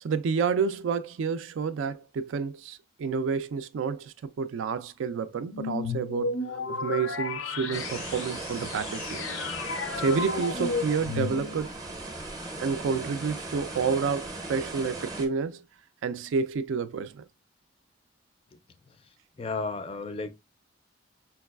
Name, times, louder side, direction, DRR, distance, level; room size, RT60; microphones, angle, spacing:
voice 1, 0.0-9.3 9.9-11.7 12.6-15.6 16.0-17.2, right 5 dB, 80° right, 0.3 m, -29 dB
sound 1, 5.5-11.8, left 4 dB, 85° left, 0.5 m, -33 dB
sound 2, 7.7-15.3, right 2 dB, 20° right, 0.5 m, -38 dB
voice 2, 18.9-20.3, left 3 dB, 30° left, 0.3 m, -35 dB
4.5 x 2.3 x 2.2 m
head